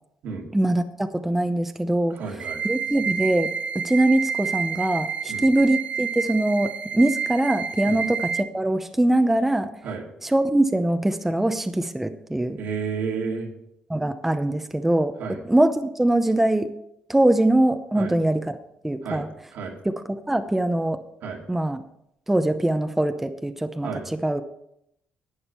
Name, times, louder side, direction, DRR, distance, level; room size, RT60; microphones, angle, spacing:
voice 1, 0.5-2.2 2.6-9.7 10.2-12.6 13.9-15.1 15.4-16.7 17.1-18.5 18.8-19.3 19.8-19.9 20.3-21.0 21.5-21.8 22.3-24.4, right 1 dB, 5° right, 8 dB, 0.6 m, -22 dB
voice 2, 2.1-2.6 5.3-5.5 7.9-8.0 9.8-10.0 12.6-13.5 15.2-15.4 17.9-18.1 19.0-19.2 19.5-19.7 21.2-21.4 23.8-24.0, right 5 dB, 80° right, 0 dB, 2.3 m, -31 dB
sound 1, 2.4-8.4, right 7 dB, 45° right, 0.8 m, -29 dB
11.5 x 8.7 x 4.3 m, 0.77 s
cardioid pair, 115°, 3 cm